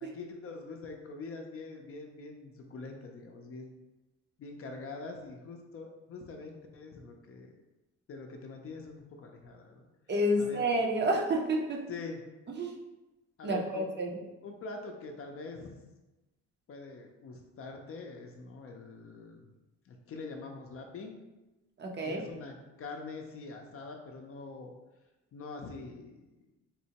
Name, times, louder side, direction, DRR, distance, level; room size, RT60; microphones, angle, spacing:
voice 1, 0.0-3.8 4.4-7.5 8.1-9.9 10.4-10.7 11.9-12.2 13.4-13.9 14.4-15.7 16.7-19.5 19.9-21.2 22.0-24.7 25.3-26.3, left 3 dB, 50° left, 3 dB, 0.5 m, -44 dB
voice 2, 10.1-11.8 12.5-12.7 13.4-14.1 21.8-22.2, right 1 dB, 35° right, 0 dB, 0.6 m, -29 dB
3.7 x 2.1 x 2.8 m, 1.1 s
cardioid pair, 90°, 30 cm